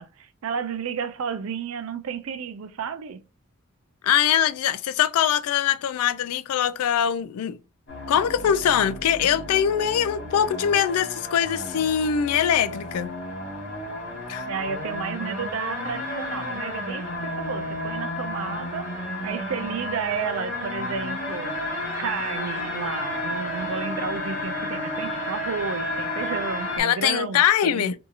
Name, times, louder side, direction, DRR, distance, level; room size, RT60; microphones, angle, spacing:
voice 1, 0.0-3.2 14.5-21.7 22.0-27.9, right 6 dB, 70° right, 0.4 m, -32 dB
voice 2, 4.0-7.6 8.1-13.1 14.3-14.5 26.8-27.9, left 9 dB, 85° left, 0.3 m, -22 dB
sound 1, 7.9-26.8, left 1 dB, 55° left, 1.3 m, -32 dB
2.7 x 2.6 x 2.4 m
head